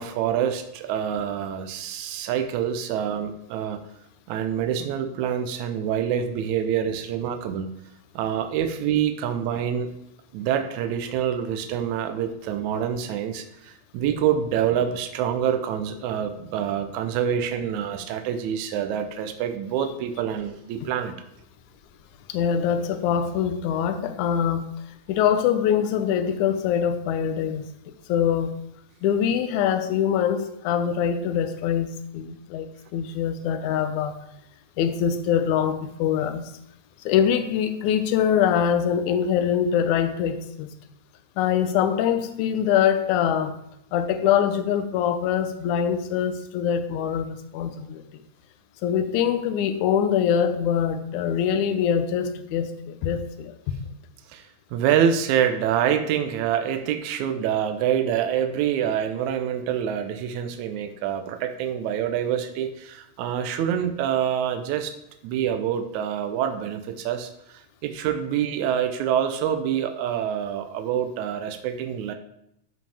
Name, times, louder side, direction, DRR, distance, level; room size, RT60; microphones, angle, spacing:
voice 1, 0.0-3.8 4.3-7.7 8.2-9.9 10.3-21.1 54.3-64.9 65.2-72.1, right 9 dB, 75° right, 7 dB, 2.1 m, -26 dB
voice 2, 22.3-24.7 25.1-27.7 28.1-28.6 29.0-34.2 34.8-36.5 37.1-40.7 41.4-43.6 43.9-48.0 48.8-53.6, left 8 dB, 80° left, 9 dB, 2.1 m, -23 dB
12.5 x 5.2 x 3.5 m, 0.77 s
omnidirectional pair, 3.5 m